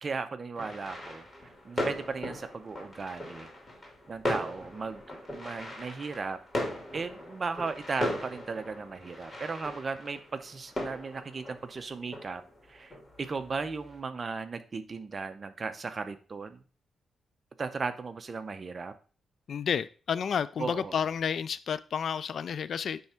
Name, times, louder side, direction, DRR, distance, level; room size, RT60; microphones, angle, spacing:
voice 1, 0.0-3.5 4.1-6.4 6.9-12.4 12.7-16.6 17.6-18.9 20.6-21.0, right 4 dB, 40° right, 10 dB, 0.7 m, -36 dB
sound 1, 0.5-14.0, left 1 dB, 25° left, 2.5 m, -38 dB
voice 2, 19.5-23.0, left 7 dB, 60° left, 17 dB, 0.3 m, -31 dB
9.4 x 3.5 x 4.3 m, 0.39 s
cardioid pair, 100°, 0 cm